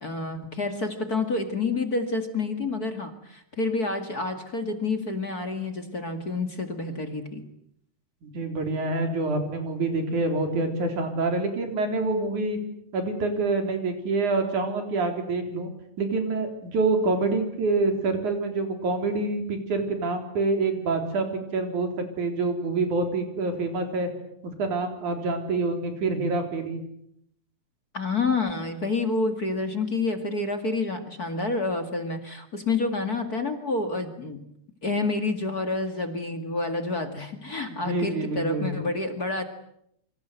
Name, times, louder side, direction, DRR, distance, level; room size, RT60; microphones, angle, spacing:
voice 1, 0.0-7.4 27.9-34.4 34.8-39.4, left 3 dB, 35° left, 7 dB, 2.3 m, -28 dB
voice 2, 8.2-12.6 12.9-15.7 16.0-21.3 21.5-21.9 22.2-24.1 24.6-26.8 37.7-38.8, right 3 dB, 80° right, 5 dB, 5.4 m, -26 dB
27.5 x 25.5 x 8.2 m, 0.75 s
omnidirectional pair, 3.4 m